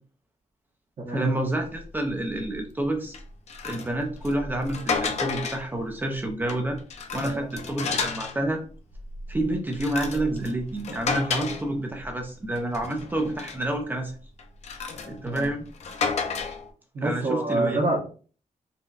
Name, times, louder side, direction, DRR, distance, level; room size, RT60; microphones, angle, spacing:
voice 1, 1.1-3.2 3.6-6.8 7.1-8.6 9.3-14.1 15.1-15.6 17.0-17.8, right 1 dB, 15° right, 3 dB, 0.4 m, -28 dB
sound 1, 1.7-1.9 2.3-2.6 3.1-5.8 6.3-8.4 8.9-12.2 12.6-13.7 14.4-16.7, left 5 dB, 60° left, 0.4 m, -32 dB
voice 2, 16.9-18.0, right 2 dB, 50° right, -2 dB, 0.9 m, -27 dB
4.0 x 2.0 x 2.3 m, 0.39 s
wide cardioid pair, 175°, 13 cm